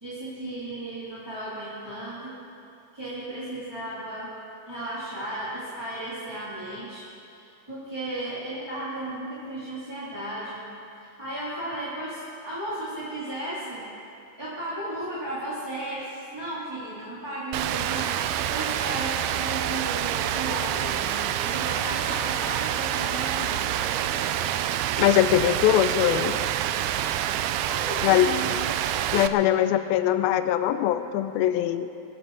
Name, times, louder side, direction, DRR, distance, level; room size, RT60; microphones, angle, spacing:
voice 1, 0.0-2.4 2.9-4.3 4.7-7.1 7.4-10.6 11.0-13.9 14.4-24.4 27.6-28.5, right 1 dB, 10° right, -11 dB, 2.0 m, -35 dB
Rain, 17.5-29.3, right 11 dB, 85° right, 2.6 m, -27 dB
voice 2, 25.0-26.4 28.0-28.3 29.1-31.9, left 12 dB, 80° left, 10 dB, 2.3 m, -22 dB
22.0 x 14.5 x 3.9 m, 2.7 s
omnidirectional pair, 4.5 m